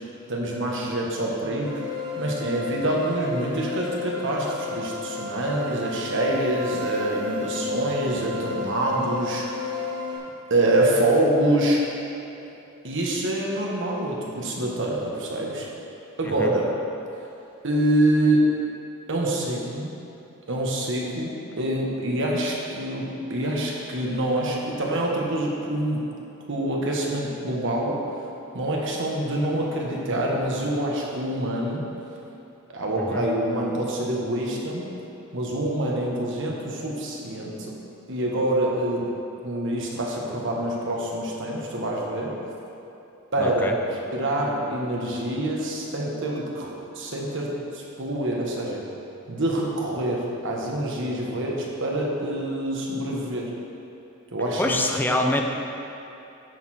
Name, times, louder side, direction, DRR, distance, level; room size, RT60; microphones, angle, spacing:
voice 1, 0.3-1.8 2.2-9.8 10.5-11.8 12.8-15.7 16.2-16.7 17.6-18.5 19.1-19.9 20.5-26.1 26.5-27.9 28.5-31.8 32.7-34.9 35.3-37.7 38.1-39.0 39.4-42.3 43.3-48.8 49.3-53.5 54.3-54.8 55.1-55.3, right 1 dB, 60° right, -2 dB, 1.4 m, -26 dB
sound 1, 1.6-10.2, left 4 dB, 20° right, 1.9 m, -32 dB
voice 2, 43.4-43.8 54.6-55.4, left 2 dB, 10° left, 2 dB, 0.5 m, -25 dB
10.5 x 6.8 x 4.4 m, 2.8 s
head